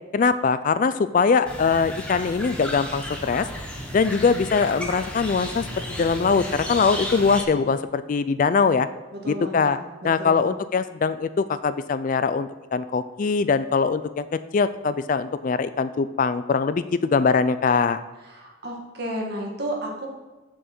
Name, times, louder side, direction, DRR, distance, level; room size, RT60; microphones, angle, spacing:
voice 1, 0.1-3.5 3.9-8.9 9.3-9.8 10.0-18.0, left 5 dB, 40° left, 13 dB, 0.3 m, -22 dB
sound 1, 1.5-7.4, left 1 dB, 5° left, 1.1 m, -34 dB
voice 2, 9.1-9.8 10.2-10.5 18.3-20.1, right 1 dB, 55° right, -1 dB, 1.9 m, -32 dB
7.1 x 6.4 x 6.0 m, 1.2 s
head